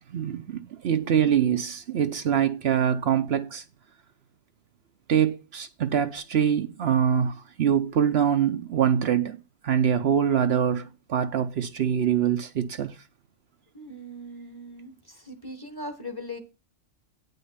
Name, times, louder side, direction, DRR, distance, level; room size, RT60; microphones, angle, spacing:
voice 1, 0.1-3.6 5.1-9.4 9.6-13.0, right 8 dB, 65° right, 0.9 m, -24 dB
voice 2, 13.7-16.4, left 1 dB, 20° left, 1.3 m, -39 dB
9.2 x 5.4 x 5.7 m
omnidirectional pair, 1.2 m